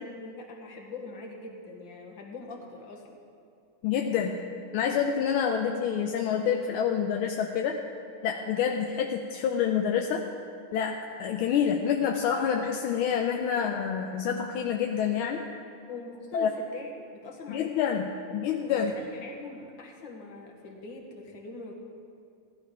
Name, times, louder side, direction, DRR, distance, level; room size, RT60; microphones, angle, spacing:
voice 1, 0.0-3.2 15.9-17.6 17.9-18.1 18.7-21.7, left 3 dB, 60° left, 1 dB, 2.1 m, -43 dB
voice 2, 3.8-4.4 4.7-7.8 8.2-10.2 10.7-15.5 16.3-16.5 17.5-18.9, left 7 dB, 80° left, 3 dB, 1.5 m, -27 dB
15.5 x 11.5 x 4.9 m, 2.6 s
omnidirectional pair, 2.4 m